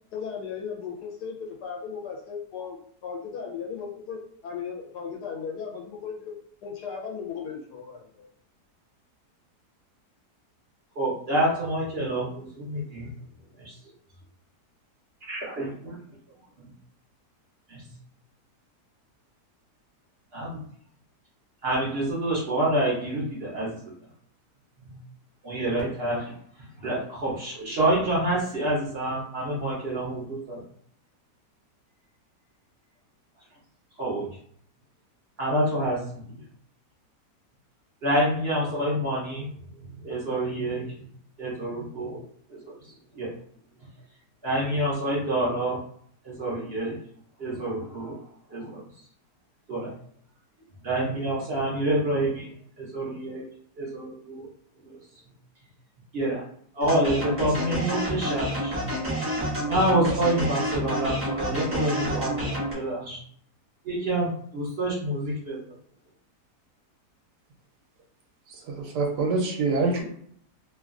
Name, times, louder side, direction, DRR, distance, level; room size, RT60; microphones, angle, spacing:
voice 1, 0.1-2.8 3.0-6.3 6.6-8.3, left 6 dB, 75° left, 0 dB, 1.2 m, -36 dB
voice 2, 11.0-13.1 13.6-13.7 15.3-15.7 17.7-17.8 20.3-20.6 21.6-23.8 24.8-25.0 25.4-26.3 26.8-30.6 34.0-34.3 35.4-36.2 38.0-39.5 40.0-40.9 41.4-42.2 42.6-42.7 43.2-43.3 44.4-45.8 46.2-47.0 47.4-48.2 48.5-48.8 49.7-49.9 50.8-53.4 53.8-54.5 54.9-55.0 56.1-56.4 56.7-58.7 59.7-62.5 62.7-63.2 63.8-65.6, right 1 dB, 55° right, -5 dB, 0.7 m, -27 dB
sound 1, 56.8-62.7, equal, 20° right, 0.3 m, -29 dB
voice 3, 68.5-70.0, right 3 dB, 85° right, 1 dB, 1.3 m, -26 dB
3.0 x 2.3 x 2.4 m, 0.62 s
omnidirectional pair, 1.8 m